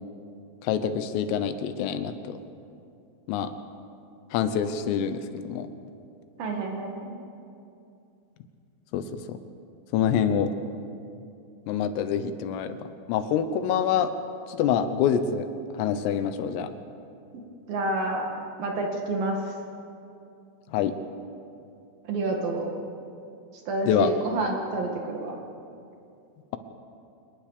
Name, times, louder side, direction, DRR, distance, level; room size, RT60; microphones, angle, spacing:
voice 1, 0.6-2.4 3.3-3.5 4.3-5.7 8.9-9.4 9.9-10.5 11.7-12.8 13.1-14.1 14.5-15.5 15.8-16.7 20.7-20.9 23.9-24.1, left 8 dB, 85° left, 10 dB, 3.6 m, -26 dB
voice 2, 6.4-7.1 17.7-18.3 18.6-19.4 22.1-22.7 23.7-25.4, right 2 dB, 55° right, 1 dB, 3.3 m, -29 dB
25.5 x 20.0 x 6.8 m, 2.6 s
omnidirectional pair, 5.9 m